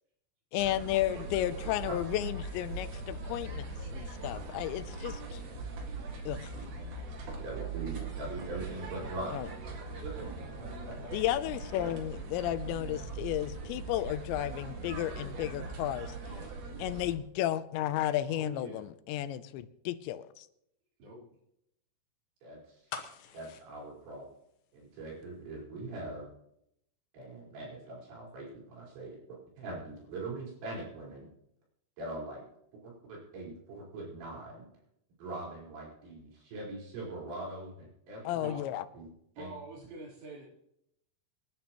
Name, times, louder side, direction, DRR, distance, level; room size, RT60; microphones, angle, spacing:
voice 1, 0.5-5.4 6.3-6.6 9.3-9.5 11.1-16.2 16.8-20.5 38.2-38.8, left 13 dB, 90° left, 13 dB, 3.0 m, -33 dB
sound 1, 0.6-17.2, right 3 dB, 55° right, 3.1 m, -40 dB
voice 2, 7.4-9.5 10.0-10.3 10.6-11.0 22.4-22.8 23.3-24.3 24.7-26.3 27.1-31.3 32.0-32.5 32.8-34.7 35.2-38.5 39.0-39.1 39.4-39.5, right 2 dB, 85° right, -4 dB, 7.0 m, -42 dB
voice 3, 18.3-18.9 21.0-21.2 38.4-38.9 39.4-40.5, right 2 dB, 70° right, -4 dB, 6.0 m, -45 dB
sound 2, 22.9-24.9 25.2-25.3, left 8 dB, 75° left, 3.2 m, -44 dB
25.5 x 11.5 x 3.0 m, 0.78 s
omnidirectional pair, 5.1 m